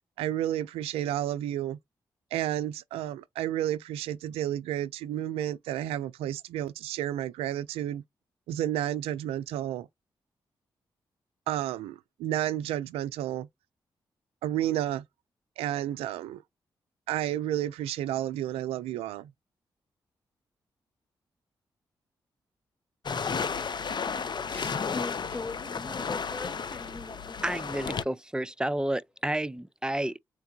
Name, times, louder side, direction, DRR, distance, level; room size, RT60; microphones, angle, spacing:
voice 1, 0.2-1.8 2.3-8.0 8.5-9.9 11.5-13.5 14.4-15.0 15.6-16.4 17.1-19.3, right 12 dB, 90° right, 0.4 m, -31 dB
sound 1, 23.1-28.0, left 5 dB, 50° left, 0.6 m, -33 dB
voice 2, 24.2-27.6, left 3 dB, 20° left, 1.3 m, -41 dB
voice 3, 27.4-30.2, right 1 dB, 10° right, 0.5 m, -30 dB
4.5 x 2.2 x 2.7 m
supercardioid pair, 45°, 10 cm